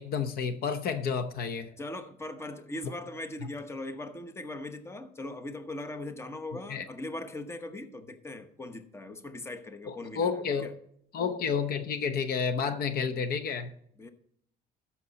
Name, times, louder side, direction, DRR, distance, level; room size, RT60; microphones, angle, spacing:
voice 1, 0.0-1.7 3.4-3.5 6.7-6.8 9.9-10.7 11.1-13.7, left 6 dB, 65° left, 10 dB, 0.9 m, -30 dB
voice 2, 1.8-10.7 14.0-14.1, left 2 dB, 15° left, 9 dB, 1.0 m, -40 dB
13.5 x 6.1 x 4.1 m, 0.71 s
cardioid pair, 110°, 17 cm